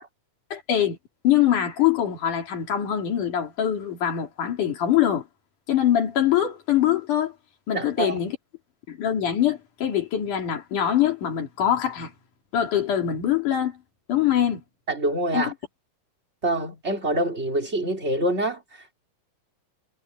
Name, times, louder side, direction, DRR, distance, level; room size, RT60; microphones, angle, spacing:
voice 1, 0.5-1.0 1.2-5.3 5.7-7.3 7.7-8.4 8.9-12.1 12.5-13.8 14.1-14.6 15.3-15.5, left 10 dB, 65° left, 4.5 m, -23 dB
voice 2, 7.7-8.2 14.9-15.5 16.4-18.9, right 1 dB, 20° right, 3.4 m, -26 dB
omnidirectional pair, 4.0 m